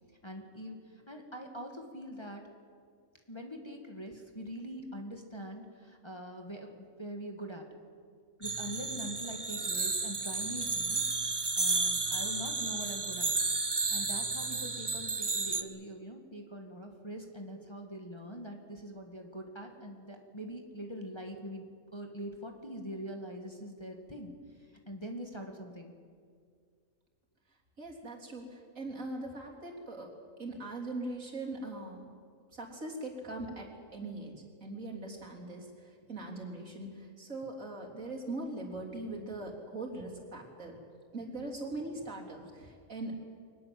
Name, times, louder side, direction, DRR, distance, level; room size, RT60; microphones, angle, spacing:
voice 1, 0.2-2.4 3.3-7.6 8.4-11.0 11.6-13.3 13.9-21.7 21.9-24.3 24.9-25.9, equal, 20° left, 2 dB, 2.1 m, -43 dB
sound 1, 8.4-15.6, right 3 dB, 20° right, 0.8 m, -32 dB
voice 2, 27.8-30.1 30.4-32.1 32.5-34.3 34.6-40.8 41.1-43.2, right 2 dB, 70° right, -1 dB, 4.0 m, -41 dB
24.0 x 19.5 x 7.8 m, 2.1 s
omnidirectional pair, 1.4 m